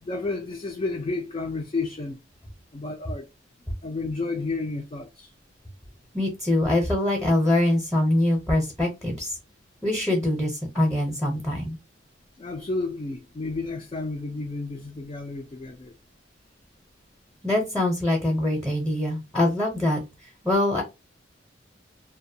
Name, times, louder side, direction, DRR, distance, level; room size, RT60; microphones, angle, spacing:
voice 1, 0.0-2.2 2.7-3.3 3.8-5.3 12.4-15.9, left 3 dB, 30° left, 0.3 m, -31 dB
voice 2, 6.1-9.3 9.8-11.8 17.4-20.0 20.4-20.8, left 1 dB, ahead, 0.7 m, -23 dB
2.5 x 2.2 x 2.6 m
head